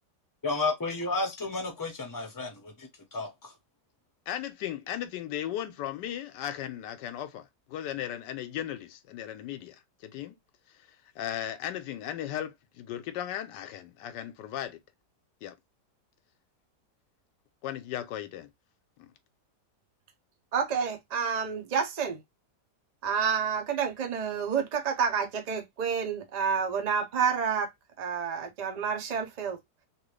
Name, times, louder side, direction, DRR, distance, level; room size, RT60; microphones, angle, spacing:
voice 1, 0.4-3.5, left 3 dB, 20° left, 0.6 m, -32 dB
voice 2, 4.3-10.3 11.2-14.8 15.4-15.5 17.6-18.5 19.0-19.1, left 11 dB, 90° left, 1.2 m, -36 dB
voice 3, 20.5-22.2 23.0-27.7 28.0-29.6, right 6 dB, 85° right, 0.3 m, -29 dB
3.0 x 2.7 x 3.1 m
omnidirectional pair, 1.8 m